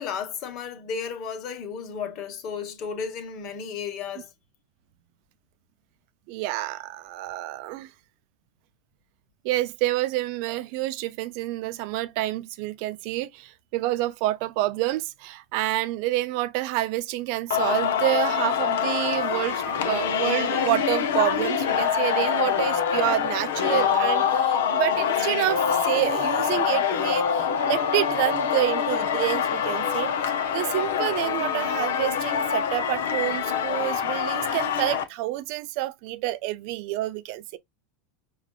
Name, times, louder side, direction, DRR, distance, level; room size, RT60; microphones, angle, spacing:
voice 1, 0.0-4.3, left 6 dB, 50° left, 1.2 m, -33 dB
voice 2, 6.3-7.9 9.4-30.1 30.5-37.6, right 16 dB, 60° right, 0.4 m, -28 dB
Singing, 17.5-35.0, left 7 dB, 75° left, 0.7 m, -25 dB
5.0 x 2.4 x 2.3 m
hypercardioid pair, 95°, 0 cm